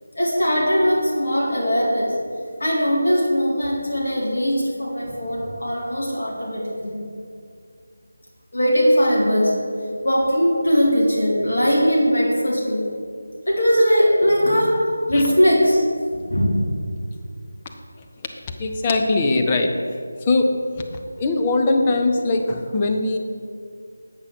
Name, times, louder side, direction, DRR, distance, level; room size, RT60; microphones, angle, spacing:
voice 1, 0.2-2.1 2.6-7.0 8.5-9.5 10.0-12.8 13.5-14.8 15.1-15.8 16.3-16.7, equal, 55° left, -4 dB, 2.0 m, -20 dB
voice 2, 18.6-19.7 20.3-20.5 21.2-23.2, left 2 dB, 20° left, 3 dB, 0.6 m, -20 dB
8.0 x 5.6 x 5.8 m, 2.3 s
figure-of-eight pair, 160°, 0 cm